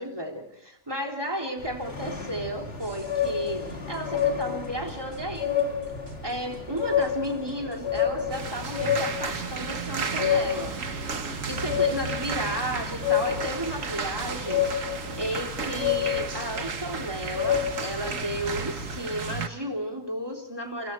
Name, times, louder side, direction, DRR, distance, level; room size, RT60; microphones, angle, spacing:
voice 1, 0.0-5.7 6.2-10.7 11.5-14.7 15.2-20.9, right 1 dB, 15° right, 2 dB, 3.4 m, -33 dB
sound 1, 1.6-19.0, left 8 dB, 35° left, 3.0 m, -30 dB
sound 2, 2.8-18.5, right 2 dB, 65° right, 4.3 m, -49 dB
sound 3, 8.3-19.5, right 5 dB, 50° right, 1.8 m, -34 dB
30.0 x 24.0 x 4.6 m, 0.72 s
omnidirectional pair, 1.8 m